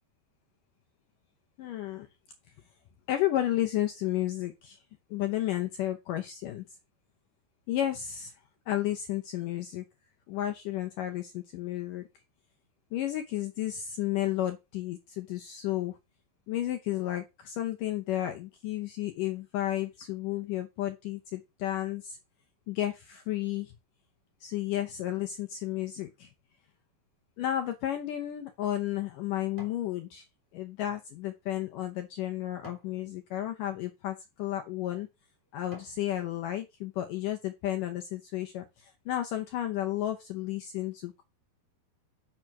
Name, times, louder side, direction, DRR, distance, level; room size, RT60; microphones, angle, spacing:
voice 1, 1.6-2.1 3.1-4.8 5.1-6.7 7.7-8.3 8.7-9.8 10.3-12.1 12.9-16.0 16.5-22.2 22.7-23.7 24.4-26.3 27.4-30.2 30.5-35.1 35.5-41.2, left 13 dB, 80° left, 1.9 m, -32 dB
sound 1, 28.1-29.9 30.4-33.0 33.6-33.8 34.5-34.7 35.2-36.1 36.5-36.6, right 2 dB, 20° right, 3.0 m, -55 dB
6.5 x 6.1 x 5.9 m
omnidirectional pair, 4.9 m